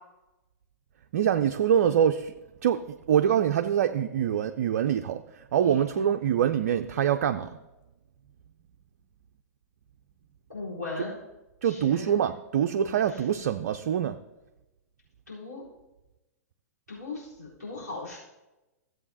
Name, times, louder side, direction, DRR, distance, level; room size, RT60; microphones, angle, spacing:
voice 1, 1.1-2.3 2.6-7.5 11.0-11.1 11.6-14.2, right 9 dB, 55° right, 8 dB, 0.4 m, -25 dB
voice 2, 10.5-11.1 11.6-12.1 15.3-15.6 16.9-18.2, left 3 dB, 85° left, -8 dB, 3.8 m, -37 dB
15.5 x 7.7 x 2.7 m, 1.0 s
figure-of-eight pair, 105°, 9 cm